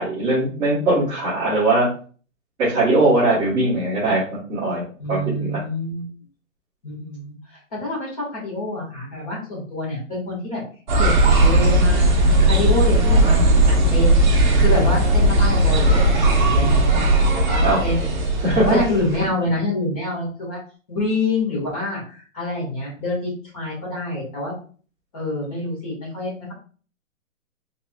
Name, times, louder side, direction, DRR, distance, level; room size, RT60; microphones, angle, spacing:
voice 1, 0.0-1.9 2.6-4.2 4.5-4.8 5.1-5.2 5.5-5.6 17.6-17.8 18.4-18.8, right 2 dB, 10° right, -12 dB, 1.1 m, -19 dB
voice 2, 5.0-6.0 6.8-7.4 7.7-10.6 10.9-14.2 14.6-18.1 18.6-20.6 20.9-24.5 25.1-26.5, left 2 dB, 25° left, -4 dB, 1.6 m, -26 dB
sound 1, 10.9-19.3, right 1 dB, 35° right, 0.8 m, -17 dB
4.0 x 3.6 x 2.3 m, 0.41 s
hypercardioid pair, 165°, 41 cm